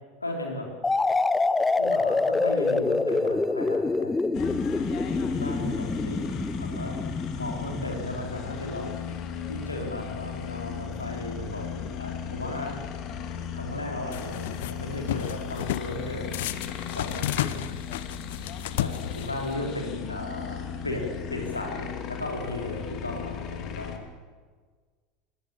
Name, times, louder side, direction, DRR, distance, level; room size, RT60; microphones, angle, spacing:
voice 1, 0.2-0.7 1.8-4.2 5.3-6.2 6.6-7.0 7.4-9.2 9.5-12.8 13.5-16.3 16.9-17.6 18.8-24.0, left 2 dB, 85° left, 1 dB, 4.0 m, -35 dB
sound 1, 0.8-8.5, left 3 dB, 10° left, 0.8 m, -26 dB
sound 2, 4.3-24.0, left 7 dB, 45° left, 2.6 m, -36 dB
sound 3, 14.1-14.7 15.1-15.9 16.3-19.5, left 13 dB, 60° left, 0.8 m, -32 dB
22.0 x 19.5 x 7.2 m, 1.5 s
figure-of-eight pair, 80°, 0 cm